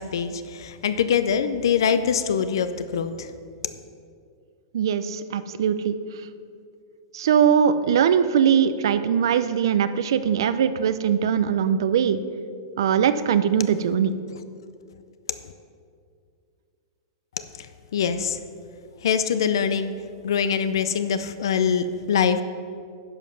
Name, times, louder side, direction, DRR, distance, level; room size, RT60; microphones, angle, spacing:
voice 1, 0.0-3.3 17.6-17.7 17.9-18.4 19.0-19.9 20.2-22.4, left 7 dB, 85° left, 11 dB, 0.5 m, -23 dB
voice 2, 4.7-5.9 7.1-12.2 12.8-14.1, right 8 dB, 75° right, 12 dB, 0.4 m, -21 dB
10.5 x 5.2 x 5.7 m, 2.3 s
supercardioid pair, 155°, 2 cm